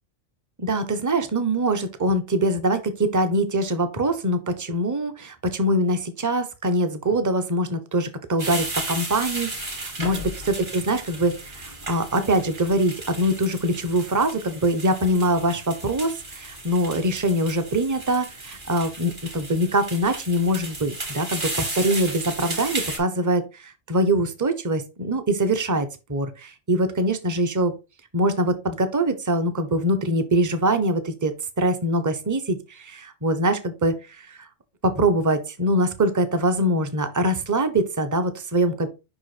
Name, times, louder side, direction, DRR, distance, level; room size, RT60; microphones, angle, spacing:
voice 1, 0.6-27.7 28.1-34.5 34.8-38.9, right 1 dB, 20° right, 8 dB, 0.7 m, -23 dB
sound 1, 8.4-23.0, right 2 dB, 45° right, 2.3 m, -34 dB
5.5 x 4.9 x 4.2 m, 0.27 s
omnidirectional pair, 1.2 m